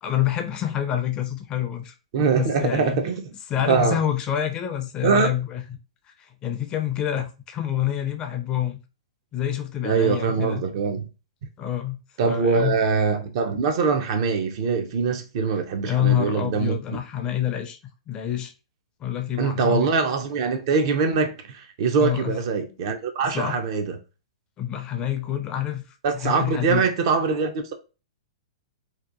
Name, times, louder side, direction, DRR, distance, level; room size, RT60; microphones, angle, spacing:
voice 1, 0.0-1.9 2.4-3.0 3.5-5.6 6.1-8.8 9.3-10.6 11.6-12.8 15.8-17.8 18.1-18.5 19.0-19.9 22.0-22.4 23.2-23.6 24.6-25.8 26.1-26.8, left 11 dB, 30° left, 0.4 m, -27 dB
voice 2, 2.1-3.3 3.6-4.0 5.0-5.3 9.8-11.1 12.2-16.8 19.4-24.0 26.0-27.7, right 5 dB, 55° right, 0.5 m, -23 dB
2.8 x 2.2 x 2.4 m
hypercardioid pair, 120°, 3 cm